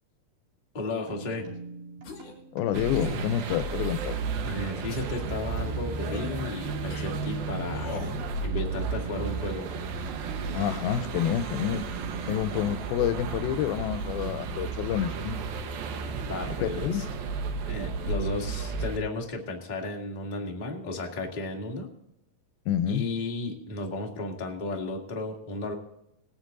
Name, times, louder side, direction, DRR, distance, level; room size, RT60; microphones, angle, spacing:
voice 1, 0.7-1.5 4.4-7.9 8.4-9.7 16.2-17.0 17.7-21.9 22.9-25.7, left 2 dB, 25° left, 0 dB, 1.1 m, -34 dB
sound 1, 1.1-13.2, right 4 dB, 60° right, 4.3 m, -44 dB
sound 2, 2.0-2.4 2.9-3.3 3.8-4.3 4.9-5.2 6.0-6.3 6.9-7.1 7.7-8.2, left 5 dB, 60° left, 3.5 m, -41 dB
voice 2, 2.5-4.2 10.5-11.9 12.3-15.4 16.6-17.1 22.7-23.0, left 10 dB, 85° left, 13 dB, 2.5 m, -28 dB
sound 3, 2.7-19.0, right 4 dB, 80° right, 2.9 m, -33 dB
19.0 x 9.9 x 3.8 m, 0.80 s
omnidirectional pair, 4.3 m